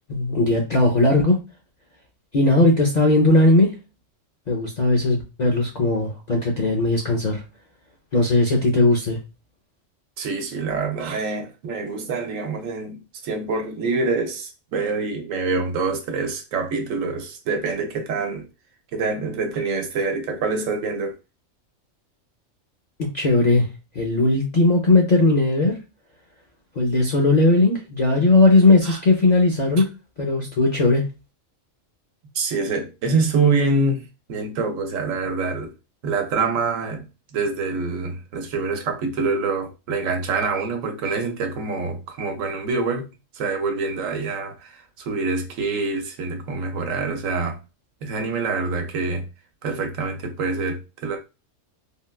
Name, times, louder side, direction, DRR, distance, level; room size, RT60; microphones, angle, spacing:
voice 1, 0.1-1.4 2.3-3.7 4.5-7.4 8.1-9.2 23.0-23.7 24.0-25.8 26.8-29.9 30.2-31.1, left 2 dB, 55° left, 0.5 m, -18 dB
voice 2, 10.2-18.5 18.9-21.2 28.8-29.0 32.3-34.0 34.3-35.7 36.0-37.1 37.3-43.1 43.3-47.6 48.0-49.2 49.6-51.2, right 4 dB, 85° right, 1.1 m, -25 dB
3.6 x 2.2 x 2.2 m
omnidirectional pair, 1.3 m